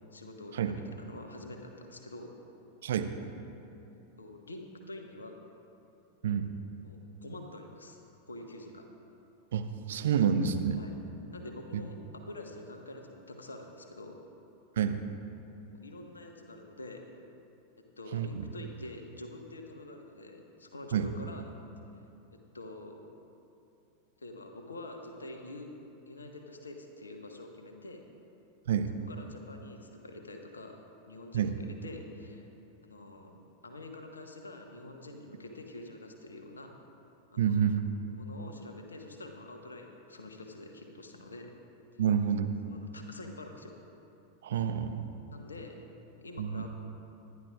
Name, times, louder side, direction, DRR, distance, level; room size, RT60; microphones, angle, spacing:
voice 1, 0.1-0.8 1.1-2.3 4.2-5.4 6.8-8.0 8.3-8.8 10.7-10.9 11.3-14.2 15.7-17.1 18.0-21.5 22.3-23.0 24.2-25.7 26.1-28.0 29.1-32.5 32.8-36.7 37.3-37.6 38.2-41.5 41.9-42.0 42.6-43.7 44.5-44.7 45.3-45.8 46.2-46.7, left 2 dB, 75° left, 3 dB, 1.3 m, -46 dB
voice 2, 9.5-10.8 14.8-15.0 18.1-18.4 20.9-21.1 28.7-28.9 31.3-31.5 37.4-37.8 42.0-42.5 44.4-45.1 46.4-46.7, right 8 dB, 60° right, 7 dB, 0.8 m, -28 dB
25.5 x 10.5 x 2.4 m, 2.8 s
figure-of-eight pair, 90°, 0 cm